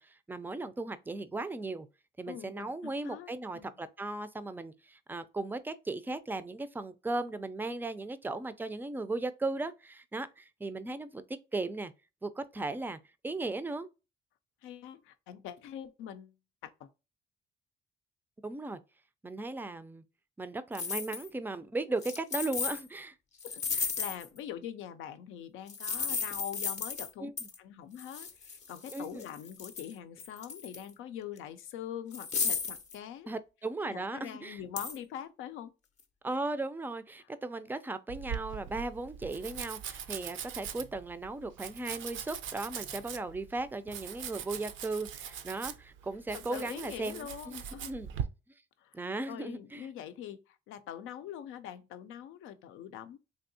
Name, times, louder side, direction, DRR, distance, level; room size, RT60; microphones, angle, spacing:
voice 1, 0.0-1.9 2.2-11.2 11.5-11.9 12.2-13.0 13.2-13.9 18.4-18.8 19.2-20.0 20.4-23.1 27.2-27.5 28.9-29.2 33.3-34.6 36.2-47.6 47.9-48.1 48.9-49.9, right 2 dB, 10° right, 0.3 m, -37 dB
voice 2, 2.3-3.7 14.6-16.4 16.6-16.9 23.4-27.3 27.6-33.3 33.8-35.7 46.3-47.9 48.8-49.0 49.3-53.2, left 10 dB, 90° left, 0.4 m, -44 dB
sound 1, 20.7-21.3 22.0-22.8 23.4-24.4 25.7-27.1 27.4-27.6 28.0-29.9 30.2-30.9 31.4-31.5 32.1-33.0 34.8-35.0, left 5 dB, 35° left, 0.6 m, -35 dB
Domestic sounds home sounds, 38.1-48.2, right 9 dB, 75° right, 0.5 m, -41 dB
3.4 x 2.7 x 2.6 m
cardioid pair, 90°, 20 cm